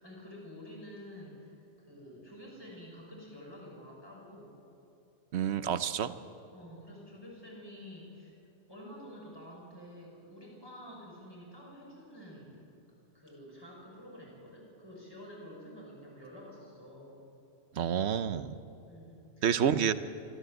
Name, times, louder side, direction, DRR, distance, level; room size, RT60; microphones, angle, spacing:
voice 1, 0.0-4.6 6.5-8.3 8.7-12.6 13.1-17.2 18.9-19.7, equal, 20° left, -4 dB, 6.5 m, -49 dB
voice 2, 5.3-6.1 17.8-18.5 19.4-19.9, right 8 dB, 65° right, 13 dB, 1.0 m, -28 dB
25.0 x 13.5 x 8.0 m, 2.8 s
omnidirectional pair, 1.3 m